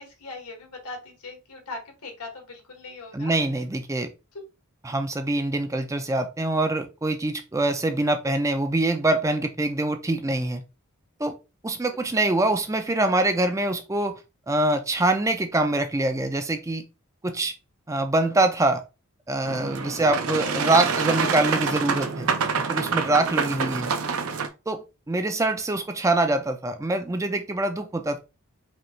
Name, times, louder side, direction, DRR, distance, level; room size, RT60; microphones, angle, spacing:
voice 1, 0.0-3.4 4.3-4.4 11.9-12.0, left 3 dB, 90° left, 1.5 m, -40 dB
voice 2, 3.1-4.1 4.8-10.6 11.2-11.4 11.6-14.2 14.5-16.8 17.2-17.5 17.9-18.8 19.3-22.3 22.7-23.9 24.7-28.2, right 2 dB, 15° right, 0.3 m, -24 dB
Boat Water vehicle, 19.4-24.5, right 5 dB, 70° right, 0.6 m, -26 dB
5.1 x 2.4 x 3.1 m
head